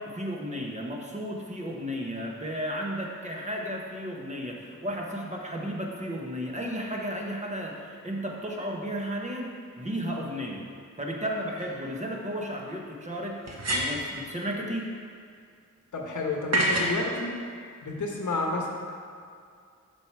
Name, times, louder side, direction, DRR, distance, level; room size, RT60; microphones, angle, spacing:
voice 1, 0.0-10.6 11.0-14.9, equal, 20° right, -1 dB, 1.3 m, -34 dB
sound 1, 11.6-11.7 13.5-14.1 16.5-17.0, right 1 dB, 55° right, 1.1 m, -26 dB
voice 2, 15.9-17.3 17.8-18.7, left 3 dB, 70° left, 0 dB, 1.3 m, -30 dB
6.8 x 6.1 x 4.7 m, 2.3 s
cardioid pair, 60°, 31 cm